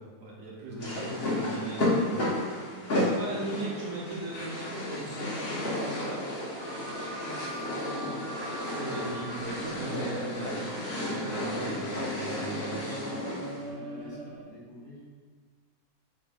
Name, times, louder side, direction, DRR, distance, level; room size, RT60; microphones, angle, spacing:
voice 1, 0.0-2.2 2.9-6.4 8.6-10.7 11.0-13.0, right 2 dB, 65° right, -4 dB, 1.2 m, -38 dB
voice 2, 0.6-2.3 2.9-3.7 6.8-8.3 11.4-11.8 13.6-15.0, equal, 15° left, -8 dB, 0.9 m, -47 dB
sound 1, 0.8-13.6, left 1 dB, 45° left, 1.1 m, -33 dB
sound 2, 1.8-14.5, right 1 dB, 85° right, 1.2 m, -43 dB
3.4 x 3.0 x 4.7 m, 1.5 s
omnidirectional pair, 1.6 m